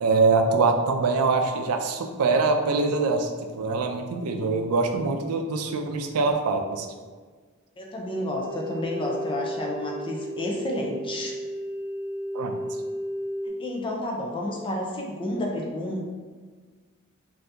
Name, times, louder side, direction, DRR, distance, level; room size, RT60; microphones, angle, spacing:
voice 1, 0.0-6.9 12.3-12.6, right 4 dB, 90° right, 5 dB, 0.4 m, -24 dB
voice 2, 4.3-4.7 7.8-11.4 13.4-16.0, left 1 dB, 25° left, -1 dB, 0.5 m, -31 dB
sound 1, 8.4-13.5, right 1 dB, 80° left, 0.8 m, -33 dB
2.7 x 2.7 x 3.3 m, 1.5 s
head